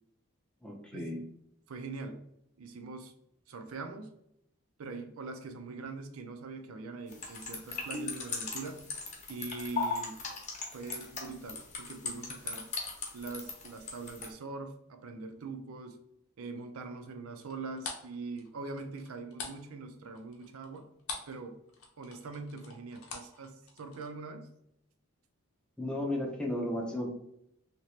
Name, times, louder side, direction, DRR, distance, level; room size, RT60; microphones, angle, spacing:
voice 1, 0.6-1.2 25.8-27.1, left 1 dB, 5° left, -1 dB, 0.5 m, -34 dB
voice 2, 1.7-2.2 2.6-3.1 3.5-4.1 4.8-8.9 9.3-10.2 10.7-12.7 13.1-16.0 16.4-20.9 21.3-21.6 22.0-24.5, right 3 dB, 80° right, 7 dB, 0.5 m, -42 dB
sound 1, 7.1-14.3, left 4 dB, 35° left, 0.8 m, -38 dB
sound 2, 17.4-21.4 21.7-24.1, left 4 dB, 85° left, 0.8 m, -44 dB
2.9 x 2.9 x 3.1 m, 0.77 s
head